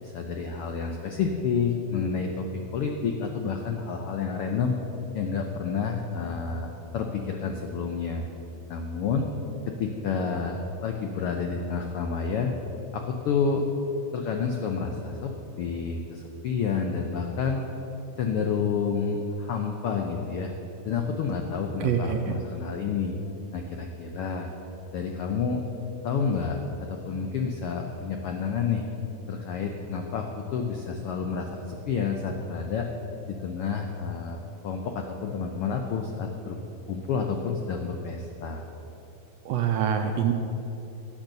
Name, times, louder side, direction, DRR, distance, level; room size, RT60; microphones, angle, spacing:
voice 1, 0.0-2.5 2.7-4.8 5.1-6.7 6.9-8.2 8.7-9.2 9.7-12.5 12.9-13.7 14.1-17.6 18.2-20.5 20.8-23.1 23.5-24.5 24.9-25.6 26.0-26.6 26.9-28.8 29.3-32.9 33.3-36.6 36.9-38.6, left 5 dB, 90° left, 3 dB, 1.2 m, -29 dB
voice 2, 21.8-22.2 39.4-40.3, right 8 dB, 75° right, 5 dB, 1.5 m, -25 dB
12.0 x 9.0 x 6.7 m, 3.0 s
omnidirectional pair, 3.5 m